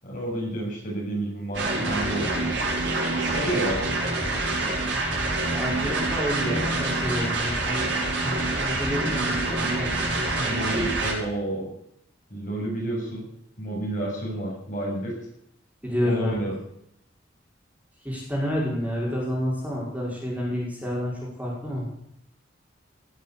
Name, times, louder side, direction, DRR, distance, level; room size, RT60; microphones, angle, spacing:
voice 1, 0.0-2.5 3.2-3.9 6.4-6.6 10.4-11.7 12.3-13.3 13.6-15.1 16.0-16.5, right 1 dB, 45° left, -3 dB, 7.6 m, -30 dB
sound 1, 1.5-11.1, right 2 dB, 75° right, 6.8 m, -26 dB
voice 2, 5.5-10.6 15.8-16.4 18.0-21.9, equal, 10° right, -4 dB, 5.1 m, -30 dB
18.5 x 8.3 x 8.6 m, 0.74 s
head